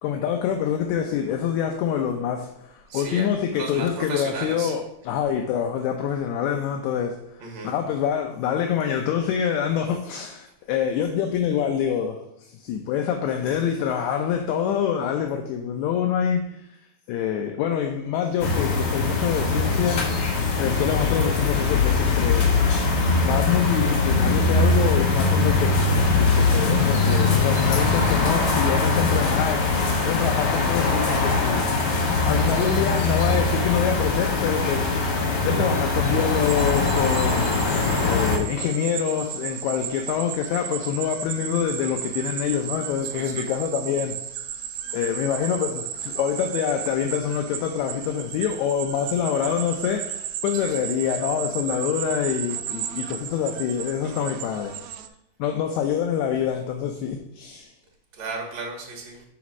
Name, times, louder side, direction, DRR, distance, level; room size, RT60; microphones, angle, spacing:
voice 1, 0.0-16.4 17.1-20.0 20.6-22.4 23.2-31.7 32.3-34.8 35.4-37.5 38.0-44.1 44.9-54.7 55.4-57.7, left 8 dB, 80° left, 4 dB, 1.9 m, -26 dB
voice 2, 2.9-4.7 7.4-7.7 43.1-43.5 50.6-50.8 54.0-54.3 58.1-59.2, right 3 dB, 50° right, 0 dB, 1.8 m, -35 dB
sound 1, 18.4-38.4, left 3 dB, 60° left, 1.8 m, -21 dB
sound 2, 36.4-55.1, right 9 dB, 75° right, 1.6 m, -34 dB
5.0 x 4.2 x 5.9 m, 0.76 s
omnidirectional pair, 3.4 m